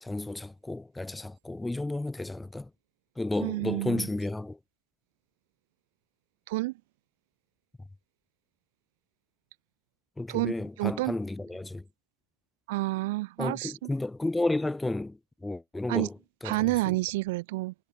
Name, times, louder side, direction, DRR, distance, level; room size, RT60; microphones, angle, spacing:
voice 1, 0.0-2.7 3.2-4.6 10.2-11.8 13.4-17.0, left 2 dB, 5° left, 0.5 m, -32 dB
voice 2, 3.4-4.1 6.5-6.7 10.3-10.5 10.8-11.2 12.7-13.7 15.9-16.1 16.4-17.7, right 20 dB, 55° right, 0.9 m, -29 dB
figure-of-eight pair, 90°, 0 cm